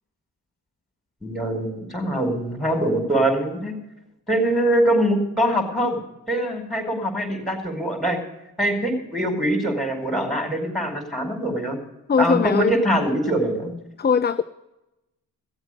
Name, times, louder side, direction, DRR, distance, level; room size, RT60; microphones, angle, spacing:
voice 1, 1.2-3.8 4.3-6.0 6.3-8.2 8.6-11.8 12.2-13.7, right 1 dB, ahead, 3 dB, 4.9 m, -23 dB
voice 2, 12.1-12.7 14.0-14.4, left 6 dB, 25° left, 11 dB, 0.5 m, -20 dB
16.0 x 8.0 x 6.4 m, 0.93 s
supercardioid pair, 50°, 39 cm